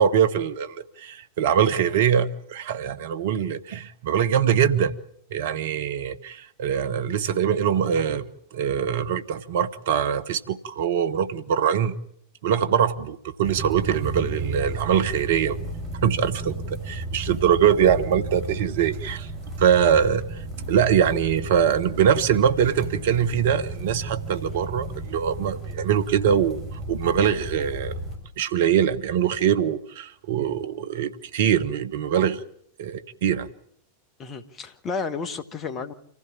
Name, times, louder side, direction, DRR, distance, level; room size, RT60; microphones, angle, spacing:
voice 1, 0.0-4.9 5.3-8.2 8.5-11.9 12.4-15.6 16.0-16.5 16.8-19.3 19.6-20.4 20.7-27.9 28.4-32.4 32.8-33.5, right 8 dB, 55° right, 1.2 m, -23 dB
sound 1, 13.4-28.2, right 2 dB, 35° right, 7.0 m, -33 dB
voice 2, 34.2-35.9, left 4 dB, 30° left, 1.8 m, -32 dB
26.5 x 15.5 x 8.7 m
figure-of-eight pair, 90°, 0 cm